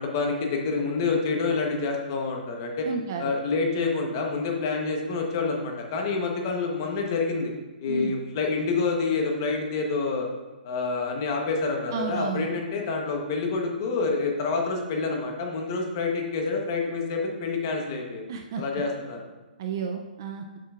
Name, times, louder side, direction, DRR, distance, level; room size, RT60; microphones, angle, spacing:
voice 1, 0.0-2.9 3.2-7.5 7.8-10.3 10.6-18.3 18.6-19.2, left 4 dB, 25° left, 2 dB, 0.9 m, -27 dB
voice 2, 2.8-3.3 7.9-8.1 11.9-12.5 18.3-18.6 19.6-20.4, right 5 dB, 25° right, 4 dB, 0.3 m, -31 dB
10.0 x 7.3 x 2.4 m, 1.2 s
hypercardioid pair, 180°, 5 cm